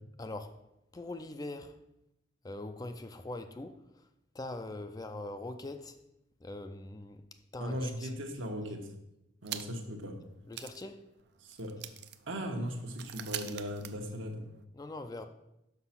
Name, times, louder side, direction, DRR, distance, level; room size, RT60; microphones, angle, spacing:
voice 1, 0.2-0.6 0.9-1.8 2.4-4.0 4.3-6.0 6.4-7.2 7.5-8.1 10.5-11.0 14.7-15.2, left 2 dB, 20° left, 0.4 m, -42 dB
voice 2, 7.6-8.9 9.4-10.2 11.4-11.7 12.3-14.4, equal, 75° right, 1.2 m, -38 dB
sound 1, 9.4-10.0 10.2-10.3 10.5-14.6, right 11 dB, 55° right, 0.5 m, -45 dB
5.9 x 5.9 x 5.8 m
head